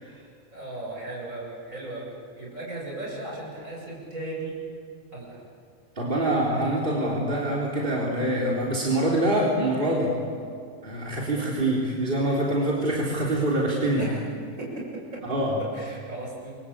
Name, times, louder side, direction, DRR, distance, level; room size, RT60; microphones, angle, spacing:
voice 1, 0.5-4.5 5.1-5.4 14.0-14.2 14.6-14.8 15.1-15.2 15.7-16.6, right 2 dB, 65° right, -3 dB, 7.7 m, -36 dB
voice 2, 6.0-10.2 10.8-14.1 15.3-15.6, right 1 dB, 35° right, -4 dB, 4.0 m, -25 dB
29.0 x 23.5 x 8.7 m, 2.3 s
omnidirectional pair, 1.5 m